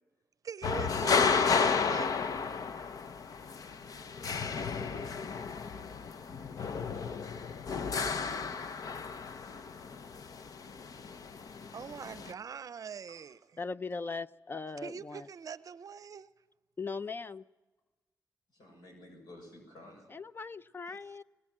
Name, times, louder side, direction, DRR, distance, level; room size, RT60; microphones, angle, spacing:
voice 1, 0.4-2.1 11.7-13.4 14.8-16.3, right 7 dB, 60° right, 0.6 m, -43 dB
sound 1, 0.6-12.3, left 5 dB, 60° left, 0.8 m, -33 dB
voice 2, 3.7-5.1 13.1-13.3 18.5-20.1, left 1 dB, 80° left, 6.5 m, -53 dB
voice 3, 13.6-15.3 16.8-17.4 20.1-21.2, left 4 dB, 35° left, 0.6 m, -39 dB
21.5 x 19.5 x 7.4 m
cardioid pair, 75°, 7 cm